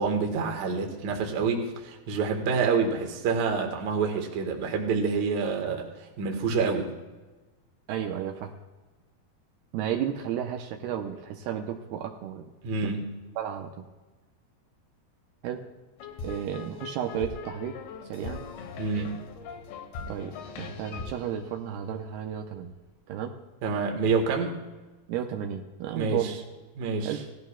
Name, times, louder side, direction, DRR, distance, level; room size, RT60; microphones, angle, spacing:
voice 1, 0.0-6.9 12.6-13.1 18.8-19.2 23.6-24.6 25.9-26.3 26.8-27.2, right 5 dB, 55° right, 2 dB, 2.3 m, -27 dB
voice 2, 7.9-8.5 9.7-12.5 12.8-13.1 13.4-13.8 15.4-15.6 16.2-17.8 18.0-18.4 20.1-22.7 23.1-23.4 25.1-26.4 27.0-27.2, right 9 dB, 80° right, 4 dB, 2.7 m, -33 dB
sound 1, 16.0-22.3, left 4 dB, 75° left, 3.0 m, -40 dB
17.5 x 14.0 x 2.3 m, 1.2 s
omnidirectional pair, 4.7 m